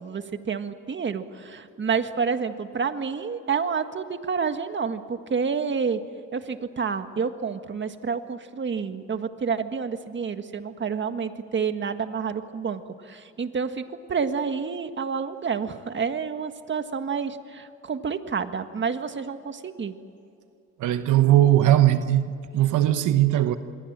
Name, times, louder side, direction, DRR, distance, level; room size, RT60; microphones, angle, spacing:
voice 1, 0.0-6.0 6.3-13.8 14.1-20.0, right 6 dB, 40° right, 1.7 m, -29 dB
voice 2, 20.8-23.6, right 13 dB, 80° right, 1.1 m, -19 dB
27.0 x 22.5 x 7.5 m
cardioid pair, 90°, 30 cm